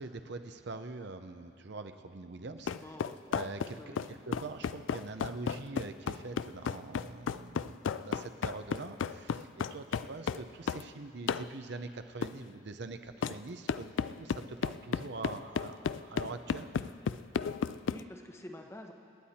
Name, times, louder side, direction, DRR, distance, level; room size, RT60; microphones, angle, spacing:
voice 1, 0.0-2.7 3.3-16.7, right 3 dB, 65° right, 8 dB, 0.7 m, -44 dB
voice 2, 2.6-3.2 3.7-4.1 17.9-18.9, left 1 dB, 15° left, 3 dB, 1.0 m, -48 dB
sound 1, 2.7-10.9 11.3-11.5 12.2-12.4 13.2-13.4 13.7-18.0, left 6 dB, 85° left, 0.4 m, -33 dB
28.5 x 9.6 x 4.3 m, 2.5 s
head